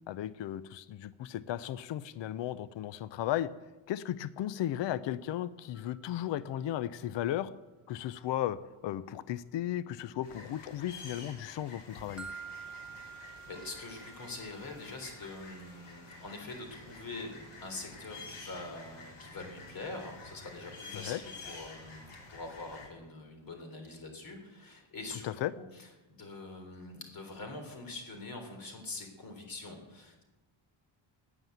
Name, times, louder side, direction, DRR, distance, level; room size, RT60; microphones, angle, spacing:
voice 1, 0.1-3.5 3.9-7.5 7.9-8.6 8.8-12.3 20.9-21.2 25.2-25.5, left 12 dB, 60° left, 16 dB, 0.7 m, -35 dB
sound 1, 5.7-10.9 11.2-16.5, right 6 dB, ahead, 0.9 m, -52 dB
sound 2, 10.2-22.9, left 3 dB, 85° left, 4.2 m, -50 dB
voice 2, 13.1-25.3 25.5-30.2, left 2 dB, 45° left, 5 dB, 3.6 m, -44 dB
15.0 x 9.9 x 9.3 m, 1.1 s
cardioid pair, 175°, 49 cm